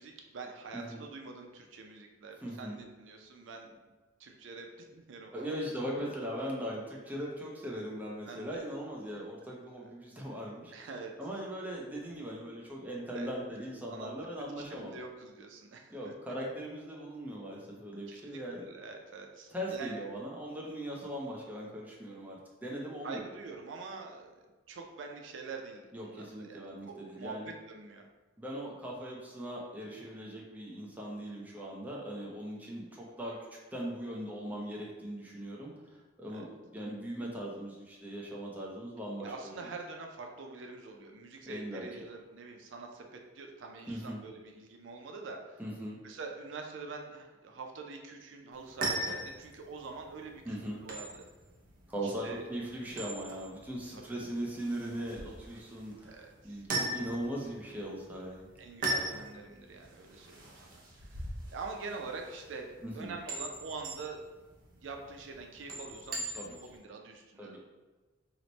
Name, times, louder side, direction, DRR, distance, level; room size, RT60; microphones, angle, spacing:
voice 1, 0.0-3.8 4.2-5.6 8.3-8.7 9.8-9.9 10.7-11.1 13.1-13.3 13.9-14.1 14.6-16.1 18.1-20.0 23.0-24.3 24.7-28.1 36.3-36.4 39.2-45.6 46.0-51.2 52.0-52.5 53.9-54.2 55.5-55.6 56.0-57.0 58.6-64.2 64.8-67.6, right 4 dB, 85° right, 3 dB, 0.4 m, -45 dB
voice 2, 0.7-1.0 2.4-2.8 5.3-15.0 15.9-18.6 19.5-23.2 25.9-27.5 28.4-33.4 33.7-39.6 41.5-42.1 43.9-44.2 45.6-46.0 50.4-50.8 51.9-58.5 62.8-63.1 66.4-66.5 67.4-67.6, equal, 10° right, -3 dB, 0.5 m, -40 dB
sound 1, 48.5-66.8, right 1 dB, 50° right, 0.7 m, -40 dB
3.0 x 2.1 x 3.9 m, 1.3 s
head